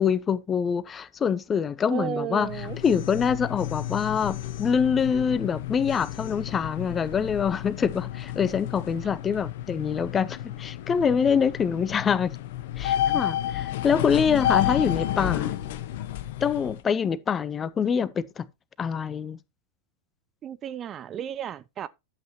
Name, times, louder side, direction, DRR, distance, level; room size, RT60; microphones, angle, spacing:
voice 1, 0.0-12.3 12.8-15.6 16.4-18.5 18.8-19.4, left 7 dB, 20° left, 0.7 m, -25 dB
voice 2, 1.9-2.8 20.4-21.9, right 10 dB, 30° right, 0.5 m, -33 dB
sound 1, 2.4-16.8, left 12 dB, 50° left, 0.9 m, -31 dB
11.5 x 8.0 x 2.9 m
figure-of-eight pair, 90°, 0 cm